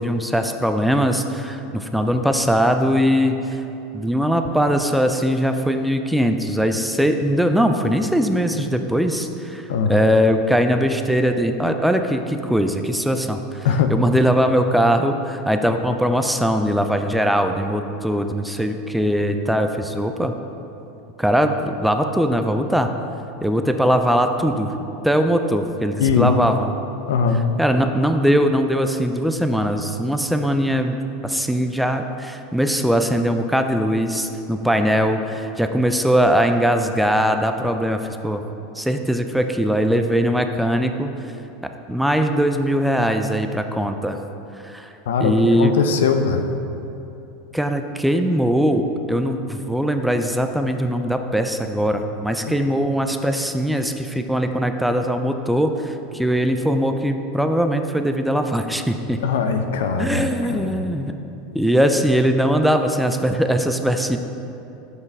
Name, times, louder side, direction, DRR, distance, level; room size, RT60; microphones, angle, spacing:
voice 1, 0.0-3.6 3.9-20.4 21.2-22.9 23.4-24.7 25.0-26.7 27.6-31.0 31.2-38.4 38.8-41.1 41.9-44.2 44.6-44.9 45.2-45.7 47.5-59.2 60.0-61.2 61.5-64.2, equal, ahead, 6 dB, 0.4 m, -20 dB
voice 2, 26.0-26.4 27.1-27.4 45.1-46.5 52.5-52.6 59.2-60.8, left 6 dB, 75° left, 7 dB, 0.5 m, -21 dB
6.0 x 5.4 x 3.5 m, 2.8 s
hypercardioid pair, 95°, 0 cm